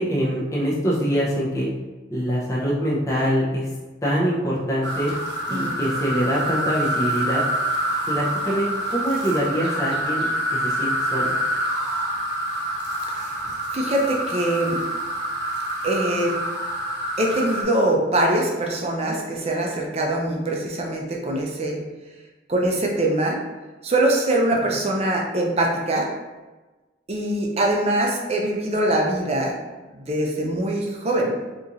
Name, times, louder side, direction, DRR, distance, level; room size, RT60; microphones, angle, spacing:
voice 1, 0.0-1.7 2.1-3.7 4.0-5.1 5.5-7.4 8.1-11.3, equal, 15° left, -6 dB, 0.6 m, -24 dB
sound 1, 4.8-17.6, right 1 dB, 65° right, 0.9 m, -26 dB
voice 2, 13.7-14.8 15.8-16.3 17.2-21.8 22.5-23.4 23.8-26.1 27.1-29.5 29.9-31.3, right 1 dB, 30° right, 0 dB, 0.5 m, -23 dB
4.0 x 2.9 x 2.5 m, 1.2 s
head